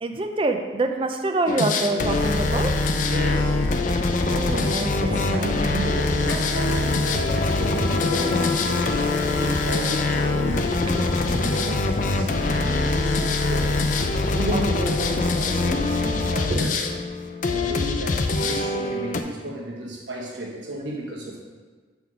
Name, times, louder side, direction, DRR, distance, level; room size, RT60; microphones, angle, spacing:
voice 1, 0.0-2.8 4.2-5.5 14.5-14.6 16.5-16.6, right 2 dB, 30° right, 6 dB, 0.4 m, -26 dB
sound 1, 1.5-19.2, left 3 dB, 45° left, 0.4 m, -23 dB
voice 2, 3.0-3.7 5.0-14.0 14.3-16.8 17.4-21.4, right 1 dB, 90° right, -2 dB, 1.3 m, -33 dB
Insect, 3.6-3.8 4.0-15.0, left 3 dB, 90° left, 0.7 m, -34 dB
7.5 x 3.5 x 4.8 m, 1.4 s
head